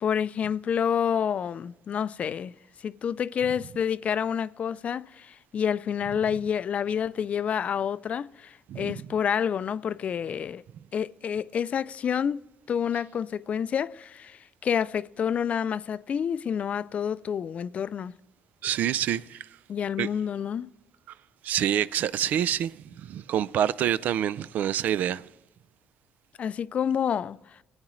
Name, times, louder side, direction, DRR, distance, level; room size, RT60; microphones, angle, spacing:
voice 1, 0.0-2.5 2.8-10.6 10.9-18.1 19.7-20.7 26.4-27.4, left 8 dB, 50° left, 0.4 m, -28 dB
voice 2, 8.7-9.1 18.6-19.5 20.0-20.1 21.4-25.2, right 10 dB, 70° right, 0.3 m, -27 dB
19.0 x 8.8 x 3.1 m
cardioid pair, 90°, 3 cm